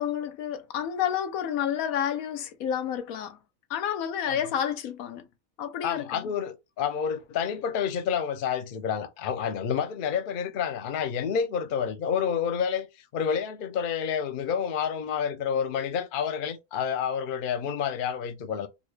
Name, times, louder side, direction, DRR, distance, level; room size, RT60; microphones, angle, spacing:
voice 1, 0.0-3.4 3.7-5.3 5.6-6.3, left 9 dB, 85° left, 1.1 m, -30 dB
voice 2, 5.8-12.9 13.1-18.7, left 7 dB, 55° left, 0.6 m, -29 dB
3.7 x 2.1 x 3.2 m
omnidirectional pair, 1.4 m